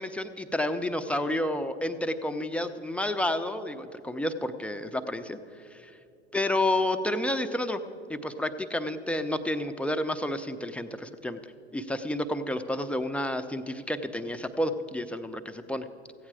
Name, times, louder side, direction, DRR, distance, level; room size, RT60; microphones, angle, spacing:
voice 1, 0.0-5.4 5.7-5.9 6.3-7.8 8.1-11.4 11.7-15.9, left 1 dB, 5° left, 8 dB, 0.5 m, -30 dB
15.5 x 8.6 x 4.8 m, 2.6 s
hypercardioid pair, 80°, 36 cm